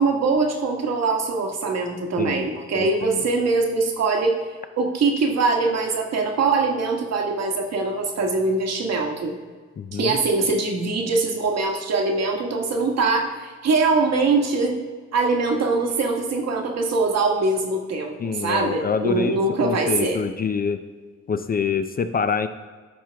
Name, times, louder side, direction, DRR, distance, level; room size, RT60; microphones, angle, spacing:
voice 1, 0.0-4.4 4.8-9.3 9.9-14.8 15.1-20.2, right 3 dB, 60° right, 2 dB, 1.4 m, -22 dB
voice 2, 2.2-2.5 2.8-3.2 9.8-10.2 18.2-20.8 21.3-22.5, left 6 dB, 30° left, 9 dB, 0.4 m, -26 dB
12.0 x 4.6 x 3.4 m, 1.5 s
cardioid pair, 90°, 30 cm